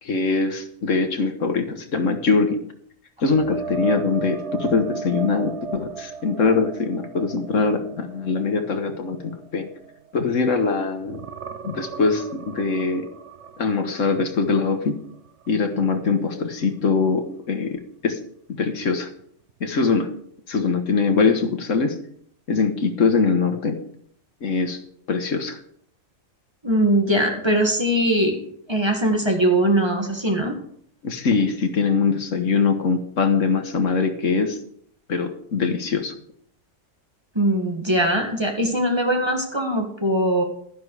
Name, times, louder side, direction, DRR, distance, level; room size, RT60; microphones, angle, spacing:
voice 1, 0.0-2.6 3.2-9.7 10.1-11.2 11.6-13.1 13.6-15.0 15.5-18.2 18.5-19.1 19.6-20.1 20.5-22.0 22.5-23.8 24.4-24.8 25.1-25.6 31.0-34.6 35.1-36.1, left 4 dB, 75° left, 7 dB, 1.6 m, -22 dB
sound 1, 3.2-10.7 11.0-14.9 15.3-15.5 18.8-18.9, right 4 dB, 65° right, 1.1 m, -35 dB
voice 2, 26.6-28.4 28.7-30.6 37.4-40.4, right 1 dB, 20° right, 2 dB, 1.9 m, -21 dB
12.0 x 10.5 x 4.8 m, 0.63 s
omnidirectional pair, 1.3 m